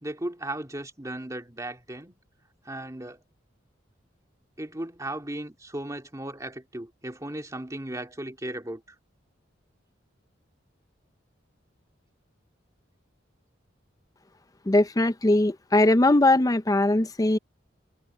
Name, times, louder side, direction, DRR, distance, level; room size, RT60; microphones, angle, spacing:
voice 1, 0.0-2.1 2.6-3.2 4.6-9.0, right 1 dB, 15° right, 2.4 m, -36 dB
voice 2, 14.7-17.4, left 2 dB, 20° left, 0.5 m, -20 dB
head